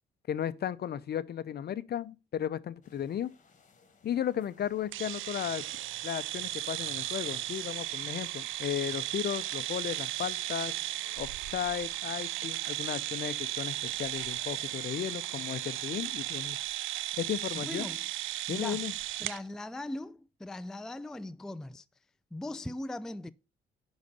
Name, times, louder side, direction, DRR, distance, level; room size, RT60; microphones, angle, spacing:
voice 1, 0.3-3.3 4.0-5.6 6.0-10.7 11.2-16.6 17.2-17.9 18.5-18.9, left 10 dB, 55° left, 0.7 m, -35 dB
sound 1, 2.8-16.4, left 5 dB, 40° left, 1.4 m, -60 dB
sound 2, 4.9-19.4, right 15 dB, 80° right, 0.5 m, -36 dB
voice 2, 17.6-18.0 18.5-18.9 19.2-21.8 22.3-23.3, left 2 dB, 5° left, 0.3 m, -39 dB
10.5 x 4.1 x 6.6 m
cardioid pair, 90°, 20 cm